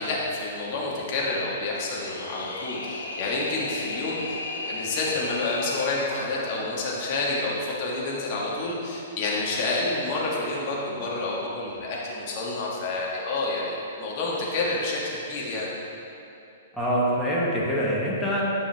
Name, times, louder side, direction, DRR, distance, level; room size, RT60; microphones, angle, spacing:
voice 1, 0.0-4.4 4.7-15.7, left 2 dB, 40° left, -4 dB, 1.7 m, -29 dB
sound 1, 1.8-6.3, left 3 dB, 70° left, 0.9 m, -35 dB
voice 2, 16.7-18.4, equal, 5° left, -7 dB, 1.4 m, -25 dB
10.0 x 5.5 x 3.4 m, 2.9 s
figure-of-eight pair, 110°, 0 cm